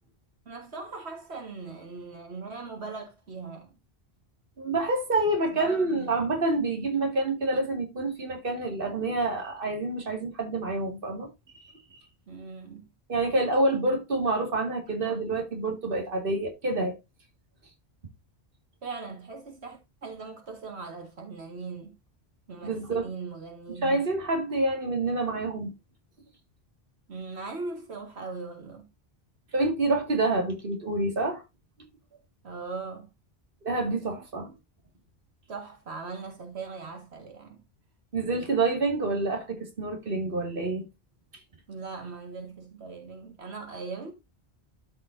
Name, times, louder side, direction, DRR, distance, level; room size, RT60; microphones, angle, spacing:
voice 1, 0.5-3.8 5.5-6.1 12.3-12.9 14.9-15.2 18.8-21.9 22.5-24.0 27.1-28.9 32.4-33.1 35.5-37.6 41.7-44.1, right 4 dB, 85° right, 2.0 m, -40 dB
voice 2, 4.6-11.3 11.6-12.0 13.1-17.0 22.6-23.1 23.8-25.7 29.5-31.4 33.6-34.5 38.1-40.8, right 2 dB, 60° right, 2.2 m, -27 dB
13.0 x 5.1 x 2.6 m
omnidirectional pair, 1.1 m